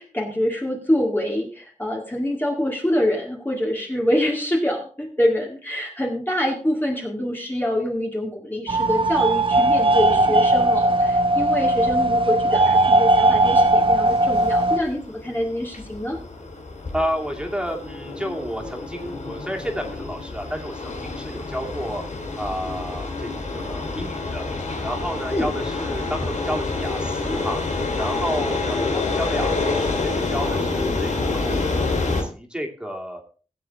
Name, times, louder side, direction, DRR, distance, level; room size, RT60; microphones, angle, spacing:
voice 1, 0.0-16.2 25.3-25.5, left 1 dB, 15° left, -1 dB, 2.1 m, -25 dB
sound 1, 8.7-14.8, right 2 dB, 40° right, 1.1 m, -18 dB
sound 2, 13.3-32.2, left 3 dB, 70° left, 2.6 m, -28 dB
voice 2, 16.9-22.0 22.4-24.4 24.8-27.6 28.0-33.2, equal, 5° right, 1 dB, 2.6 m, -31 dB
16.5 x 7.8 x 3.5 m, 0.37 s
wide cardioid pair, 75°, 13 cm